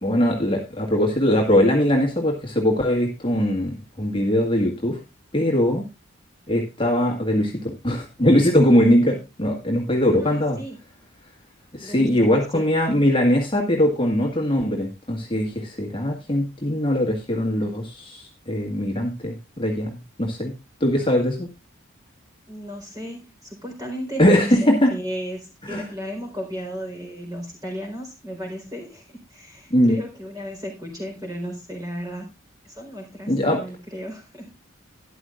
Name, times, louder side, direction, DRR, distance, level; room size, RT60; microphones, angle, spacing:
voice 1, 0.0-5.0 5.3-5.8 6.5-10.6 11.7-20.5 20.8-21.5 24.2-24.9 25.7-25.9 29.7-30.0 33.3-33.6, left 1 dB, 25° left, 1 dB, 1.7 m, -21 dB
voice 2, 10.2-10.8 11.8-12.6 21.0-21.4 22.5-32.3 32.6-34.5, equal, 20° right, 2 dB, 4.1 m, -34 dB
13.0 x 11.0 x 2.4 m, 0.26 s
head